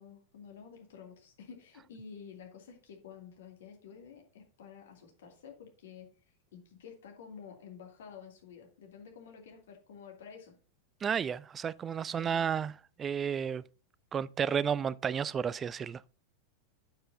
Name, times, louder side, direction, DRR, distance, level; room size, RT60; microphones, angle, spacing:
voice 1, 0.0-6.1 6.5-10.6 12.2-12.4, left 6 dB, 60° left, 2.3 m, -50 dB
voice 2, 11.0-13.6 14.1-16.0, right 7 dB, 20° right, 0.3 m, -32 dB
8.6 x 7.5 x 2.7 m
figure-of-eight pair, 90°, 0 cm